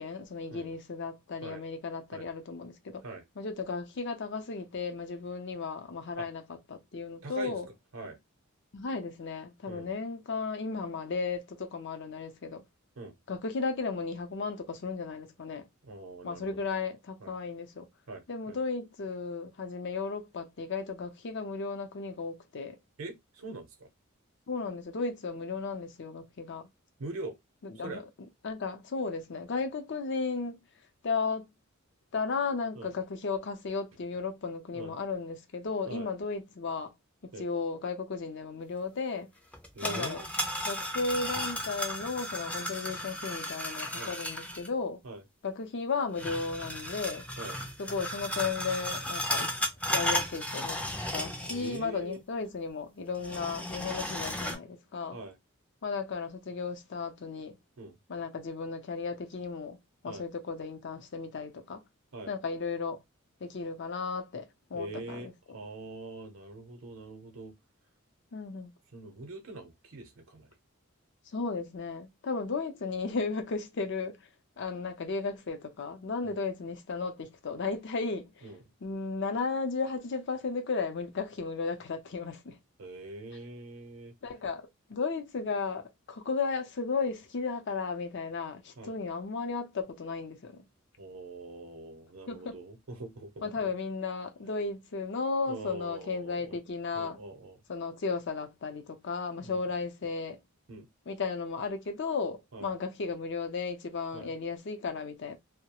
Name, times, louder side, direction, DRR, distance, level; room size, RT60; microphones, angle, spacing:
voice 1, 0.0-3.0 3.4-6.4 6.7-7.7 8.7-12.6 13.3-15.7 16.2-17.9 18.3-22.8 24.5-26.7 27.6-28.0 28.4-30.6 31.0-31.4 32.1-36.9 37.2-39.3 39.8-40.2 40.6-45.0 45.4-47.3 47.8-49.5 49.9-50.8 51.1-55.2 55.8-57.5 58.1-59.8 60.0-61.8 62.3-63.0 63.4-65.3 68.3-68.7 71.3-74.3 74.6-78.4 78.8-82.6 84.2-90.6 92.3-92.6 93.4-97.2 97.7-100.4 101.1-105.4, left 4 dB, 55° left, 0.5 m, -34 dB
voice 2, 7.2-7.6 7.9-8.2 9.7-9.9 13.0-13.1 15.8-16.6 17.2-17.3 18.1-18.6 23.0-23.9 27.0-27.4 27.7-28.0 32.7-32.9 34.7-34.9 35.8-36.1 37.3-37.5 39.7-40.3 44.0-44.1 45.0-45.2 47.4-47.6 51.4-52.2 55.1-55.4 57.8-58.0 60.1-60.2 62.1-62.3 64.7-67.5 68.9-70.5 76.2-76.4 78.4-78.6 82.8-84.1 88.8-88.9 91.0-93.7 95.5-96.6 96.9-97.6 99.3-99.6 100.7-100.9 102.5-102.7 104.1-104.3, right 2 dB, 75° right, 0.7 m, -43 dB
sound 1, 39.5-44.7 46.2-51.9 52.1-52.2 53.1-54.6, equal, 5° left, 0.4 m, -34 dB
2.3 x 2.0 x 2.9 m
head